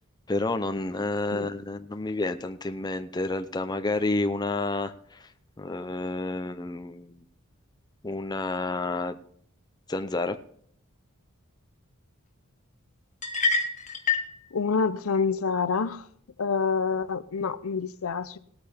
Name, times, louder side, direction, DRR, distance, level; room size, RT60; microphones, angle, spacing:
voice 1, 0.3-5.3 5.6-7.2 8.0-9.2 9.9-10.4, left 2 dB, 20° left, 0.6 m, -30 dB
sound 1, 13.2-14.3, left 4 dB, 35° left, 1.3 m, -26 dB
voice 2, 14.5-16.0 16.4-18.4, left 5 dB, 80° left, 0.7 m, -27 dB
18.5 x 9.0 x 3.5 m
head